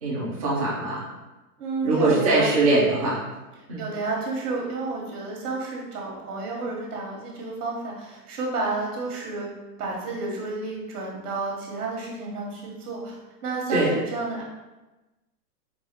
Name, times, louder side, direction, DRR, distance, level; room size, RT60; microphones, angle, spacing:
voice 1, 0.0-1.0 1.8-3.2 3.7-3.8 13.7-13.9, right 2 dB, 25° right, -9 dB, 0.4 m, -22 dB
voice 2, 1.6-2.5 3.8-9.5 9.8-14.4, right 3 dB, 70° right, -2 dB, 1.1 m, -31 dB
4.7 x 2.2 x 2.8 m, 1.1 s
hypercardioid pair, 165°, 48 cm